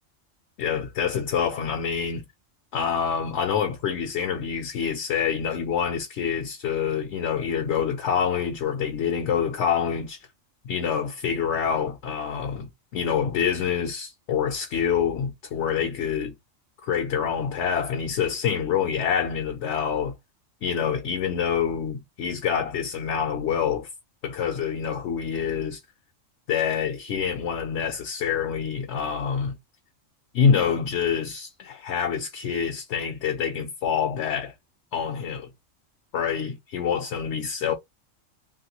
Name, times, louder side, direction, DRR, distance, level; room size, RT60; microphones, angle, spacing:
voice 1, 0.6-2.2 2.7-10.3 10.7-16.3 16.8-20.1 20.6-23.9 24.2-25.8 26.5-29.5 30.3-34.5 34.9-35.5 36.1-37.7, left 7 dB, 70° left, 0.9 m, -26 dB
3.0 x 2.6 x 2.9 m
omnidirectional pair, 1.3 m